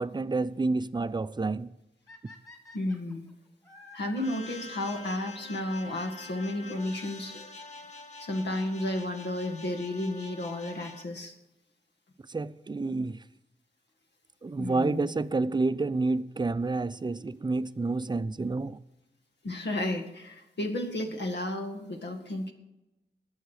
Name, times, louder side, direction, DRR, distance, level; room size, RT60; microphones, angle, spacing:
voice 1, 0.0-1.7 12.3-13.2 14.4-18.8, right 3 dB, 25° right, 0.5 m, -29 dB
sound 1, 2.1-4.3 5.8-6.8 7.7-7.8 8.5-8.6 8.8-8.9 10.8-11.1 13.9-14.0 15.0-15.1 16.6-16.7 16.9-17.0 17.3-17.4 17.5-17.6 17.8-17.9 18.1-18.2 18.4-18.5, left 2 dB, 20° left, 3.0 m, -53 dB
voice 2, 2.7-3.3 3.9-7.5 8.2-11.3 14.6-15.1 19.4-22.5, left 1 dB, 80° left, 2.0 m, -32 dB
sound 2, 4.2-11.0, left 3 dB, 40° left, 1.4 m, -46 dB
19.5 x 7.3 x 4.8 m
wide cardioid pair, 95°, 18 cm